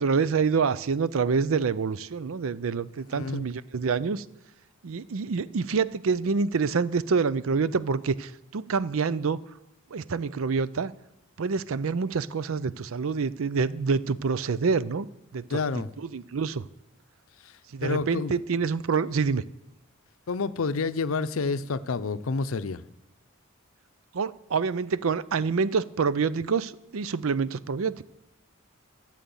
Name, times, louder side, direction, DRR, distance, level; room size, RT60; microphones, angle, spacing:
voice 1, 0.0-4.2 4.8-9.4 9.9-10.9 11.4-15.1 15.3-15.6 16.0-16.6 17.7-19.4 24.1-28.0, right 5 dB, 75° right, 18 dB, 0.5 m, -27 dB
voice 2, 3.1-3.5 15.5-15.9 17.4-18.3 20.3-22.8, left 4 dB, 75° left, 14 dB, 0.6 m, -29 dB
13.0 x 7.6 x 7.0 m, 0.86 s
head